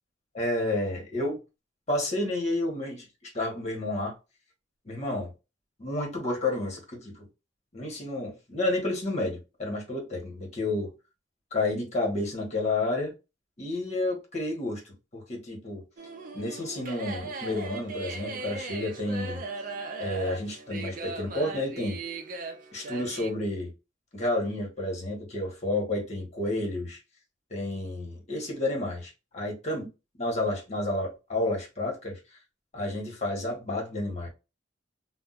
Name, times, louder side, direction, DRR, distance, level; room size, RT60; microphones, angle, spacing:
voice 1, 0.3-1.4 1.9-4.1 4.8-5.3 5.8-7.3 7.7-10.9 11.5-13.1 13.6-15.8 16.3-19.4 20.0-22.0 22.7-23.7 24.1-27.0 27.5-29.9 30.2-32.2 32.7-34.3, left 2 dB, 35° left, 1.3 m, -30 dB
sound 1, 16.0-23.3, right 3 dB, 45° right, 0.6 m, -38 dB
2.6 x 2.2 x 4.0 m
head